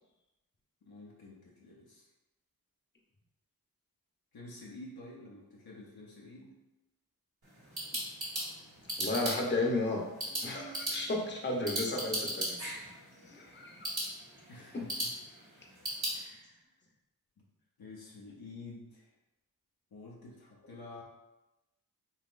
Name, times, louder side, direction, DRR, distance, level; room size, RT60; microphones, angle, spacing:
voice 1, 0.8-2.1 4.3-6.6 14.5-15.4 16.1-16.7 17.8-19.1 19.9-21.0, left 2 dB, 80° left, -4 dB, 0.7 m, -50 dB
click mouse, 7.4-16.2, right 1 dB, 85° right, 1.3 m, -38 dB
voice 2, 9.0-10.0 10.4-12.6 13.2-13.9 14.7-14.8, left 2 dB, 30° left, -1 dB, 0.7 m, -33 dB
3.9 x 2.9 x 2.5 m, 0.98 s
cardioid pair, 40°, 36 cm